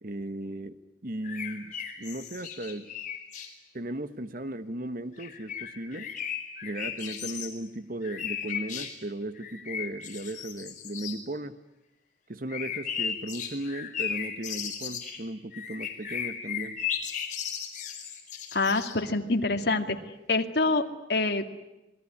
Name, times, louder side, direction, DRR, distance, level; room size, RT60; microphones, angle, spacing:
voice 1, 0.0-2.9 3.7-6.1 6.6-11.6 12.3-16.8, right 1 dB, 45° right, 12 dB, 1.3 m, -36 dB
sound 1, 1.2-3.5 5.2-7.5 8.0-9.0 9.3-11.2 12.5-19.0, left 8 dB, 40° left, 4.6 m, -36 dB
voice 2, 18.5-20.0 20.3-21.5, left 3 dB, 60° left, 5 dB, 2.3 m, -26 dB
27.5 x 20.0 x 9.9 m, 0.97 s
head